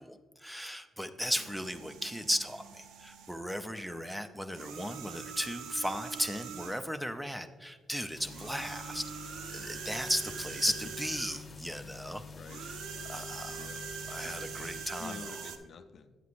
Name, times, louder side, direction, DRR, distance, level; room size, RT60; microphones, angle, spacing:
voice 1, 0.0-12.2 12.6-12.8 13.1-13.7 14.1-15.3, equal, 5° right, 10 dB, 0.4 m, -36 dB
voice 2, 1.1-1.4 12.2-12.6 13.5-13.8 15.0-16.1, left 6 dB, 55° left, 9 dB, 0.4 m, -48 dB
sound 1, 1.3-3.5 4.5-6.9 8.2-11.6 12.4-15.6, right 6 dB, 85° right, 0.5 m, -43 dB
sound 2, 8.1-14.9, left 4 dB, 35° left, 0.9 m, -48 dB
8.3 x 7.8 x 2.5 m, 1.4 s
cardioid pair, 90°, 0 cm